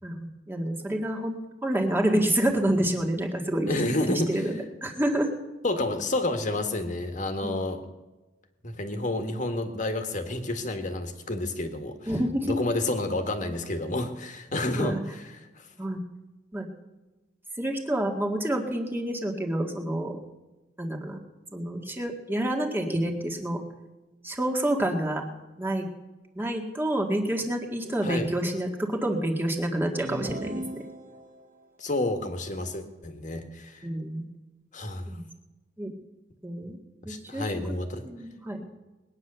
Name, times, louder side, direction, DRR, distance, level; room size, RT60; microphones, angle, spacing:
voice 1, 0.0-3.7 4.0-5.3 7.4-7.6 12.1-12.6 14.7-15.0 15.8-16.0 16.5-16.7 17.5-20.2 20.8-21.2 21.5-23.6 24.2-25.3 25.6-25.9 26.3-30.8 33.8-34.3 35.1-35.3 35.8-35.9 36.4-36.8 37.0-37.5 38.0-38.6, right 1 dB, 10° right, 1 dB, 1.9 m, -28 dB
voice 2, 3.7-4.4 5.6-7.8 8.6-12.0 12.4-14.9 15.6-15.7 28.0-28.3 31.8-33.9 34.7-35.1 37.0-38.0, left 2 dB, 45° left, 6 dB, 1.7 m, -29 dB
sound 1, 30.0-31.6, right 1 dB, 45° right, 1.0 m, -37 dB
20.5 x 9.6 x 6.8 m, 1.1 s
head